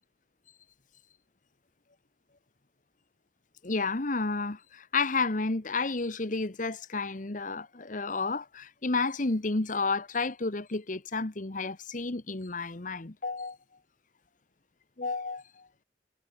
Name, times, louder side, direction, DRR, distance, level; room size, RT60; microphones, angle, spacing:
voice 1, 3.6-13.6 15.0-15.7, left 3 dB, 45° left, 1.3 m, -31 dB
head